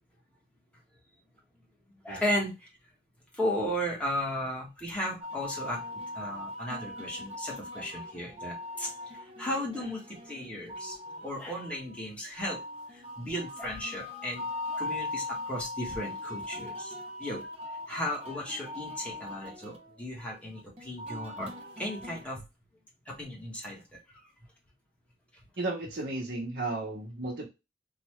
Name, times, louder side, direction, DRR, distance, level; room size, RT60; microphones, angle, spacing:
voice 1, 2.0-2.5 3.4-8.9 9.2-11.0 11.2-12.6 12.9-14.5 14.7-16.9 17.2-17.5 17.9-21.5 21.8-22.4 23.1-24.0, equal, 5° left, -3 dB, 1.4 m, -35 dB
sound 1, 5.2-22.2, left 2 dB, 35° right, 0.9 m, -40 dB
voice 2, 25.6-27.5, right 2 dB, 75° right, -2 dB, 1.1 m, -34 dB
4.0 x 2.6 x 3.0 m, 0.26 s
head